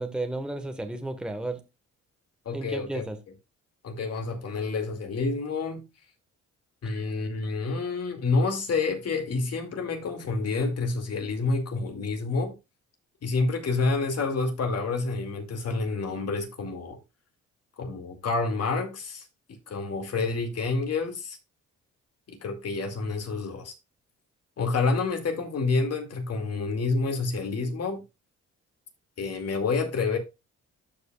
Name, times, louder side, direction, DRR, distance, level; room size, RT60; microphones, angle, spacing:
voice 1, 0.0-1.6 2.5-3.2, right 2 dB, 5° right, 1.3 m, -33 dB
voice 2, 2.5-3.0 3.8-5.8 6.8-12.5 13.2-17.0 17.8-19.2 19.7-21.4 22.3-23.7 24.6-28.0 29.2-30.2, left 3 dB, 55° left, 2.3 m, -28 dB
13.0 x 5.2 x 2.3 m
cardioid pair, 90°, 30 cm